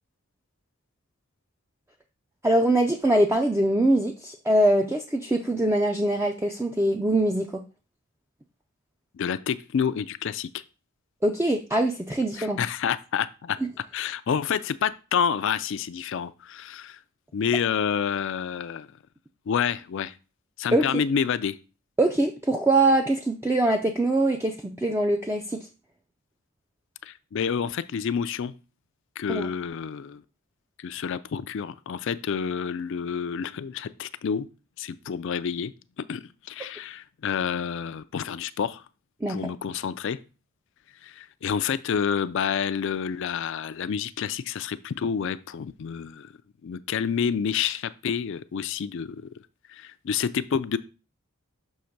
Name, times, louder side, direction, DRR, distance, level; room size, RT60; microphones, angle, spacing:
voice 1, 2.4-7.6 11.2-12.6 20.7-21.0 22.0-25.7 29.3-29.5 39.2-39.4, right 1 dB, 10° right, 3 dB, 0.4 m, -23 dB
voice 2, 9.1-10.5 12.4-13.6 13.9-17.0 17.3-18.9 19.5-20.1 20.6-21.6 27.0-28.5 29.2-30.2 30.8-34.5 34.8-35.7 36.0-38.8 39.3-40.2 41.0-46.3 46.6-49.3 49.7-50.8, left 7 dB, 60° left, 13 dB, 0.4 m, -28 dB
6.4 x 3.0 x 5.8 m, 0.34 s
head